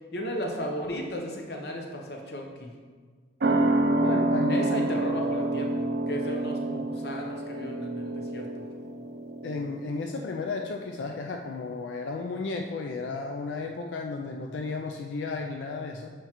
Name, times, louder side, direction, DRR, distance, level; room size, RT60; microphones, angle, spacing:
voice 1, 0.1-2.7 4.5-8.5, equal, 60° left, 1 dB, 0.8 m, -35 dB
sound 1, 3.4-10.5 10.8-10.9, right 2 dB, 60° right, 0.4 m, -28 dB
voice 2, 4.0-4.9 9.4-16.1, left 4 dB, 90° left, 3 dB, 0.4 m, -33 dB
7.8 x 4.4 x 3.0 m, 1.5 s
head